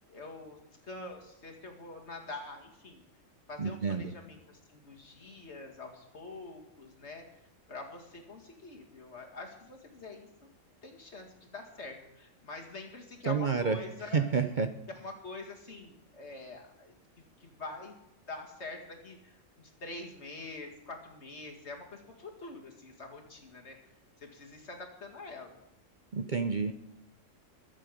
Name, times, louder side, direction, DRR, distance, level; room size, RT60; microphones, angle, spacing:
voice 1, 0.1-0.6 0.8-3.0 3.5-7.3 7.7-10.5 10.8-14.3 15.0-18.0 18.3-25.6, left 3 dB, 60° left, 2 dB, 2.4 m, -45 dB
voice 2, 3.6-4.1 13.3-13.8 14.1-14.7 26.1-26.7, right 5 dB, 45° right, 8 dB, 0.8 m, -29 dB
22.5 x 7.6 x 5.2 m, 0.86 s
omnidirectional pair, 1.3 m